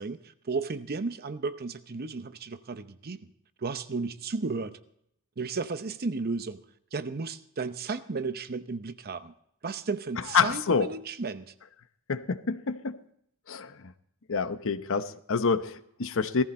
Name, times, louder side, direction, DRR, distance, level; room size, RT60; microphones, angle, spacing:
voice 1, 0.0-3.2 3.6-4.8 5.4-6.6 6.9-9.3 9.6-11.5, right 4 dB, 45° right, 12 dB, 0.7 m, -34 dB
voice 2, 10.3-10.9 12.1-13.0 13.5-13.8 14.3-16.4, left 5 dB, 65° left, 11 dB, 0.8 m, -27 dB
17.5 x 14.5 x 4.2 m, 0.73 s
head